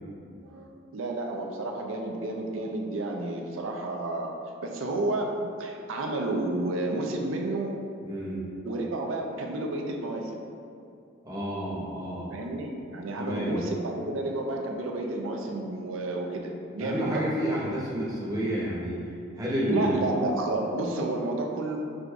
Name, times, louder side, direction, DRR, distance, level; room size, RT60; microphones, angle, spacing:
voice 1, 0.4-4.3 4.6-7.8 8.7-10.4 12.3-17.3 19.7-21.8, right 2 dB, 75° right, 1 dB, 0.5 m, -31 dB
voice 2, 8.0-8.4 11.2-12.4 13.2-13.5 16.8-19.0 19.4-20.0, equal, 20° right, -7 dB, 0.8 m, -30 dB
6.2 x 2.5 x 2.3 m, 2.5 s
head